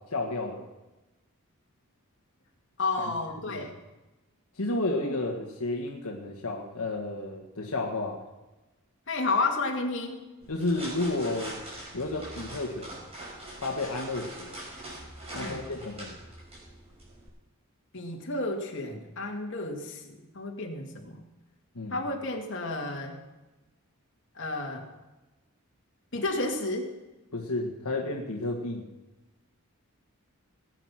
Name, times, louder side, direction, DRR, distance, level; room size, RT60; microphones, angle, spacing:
voice 1, 0.1-0.7 3.0-3.1 3.5-3.6 4.6-8.2 10.5-11.6 11.9-12.9 13.6-14.6 15.3-16.2 21.7-22.0 27.3-28.8, left 2 dB, 80° left, 0 dB, 1.5 m, -32 dB
voice 2, 2.8-3.8 5.0-5.2 9.1-10.2 15.3-15.7 17.9-21.2 21.9-23.2 24.4-24.9 26.1-26.9, left 2 dB, 55° left, 1 dB, 2.3 m, -31 dB
sound 1, 10.4-17.3, right 1 dB, 30° right, 5.4 m, -43 dB
19.0 x 9.2 x 5.8 m, 1.1 s
head